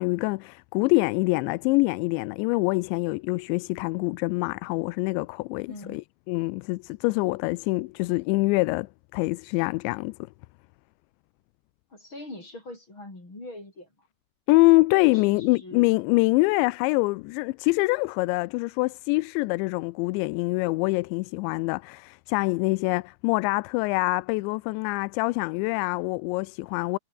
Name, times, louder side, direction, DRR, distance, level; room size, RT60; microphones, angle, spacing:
voice 1, 0.0-10.3 14.5-27.0, left 24 dB, 85° left, 2.9 m, -25 dB
voice 2, 5.7-6.0 11.9-13.9 15.1-15.9, left 2 dB, 25° left, 8.2 m, -42 dB
omnidirectional pair, 5.1 m